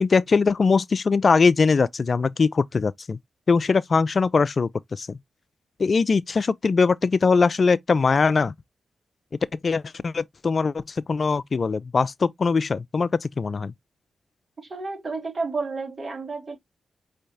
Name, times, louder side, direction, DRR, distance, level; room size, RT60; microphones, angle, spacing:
voice 1, 0.0-3.2 3.5-5.2 5.8-8.5 9.6-13.7, left 4 dB, 55° left, 0.3 m, -21 dB
voice 2, 14.6-16.6, right 3 dB, 50° right, 2.4 m, -31 dB
5.4 x 3.2 x 2.6 m
supercardioid pair, 45°, 0 cm